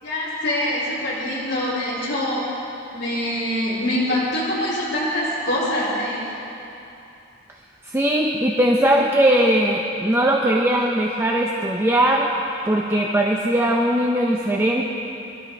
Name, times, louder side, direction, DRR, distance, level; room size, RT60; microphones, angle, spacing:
voice 1, 0.0-2.7 2.9-6.3, left 1 dB, 60° left, -10 dB, 3.4 m, -24 dB
voice 2, 7.8-12.3 12.6-14.9, right 1 dB, 10° right, -1 dB, 0.7 m, -19 dB
24.5 x 12.5 x 3.4 m, 2.8 s
head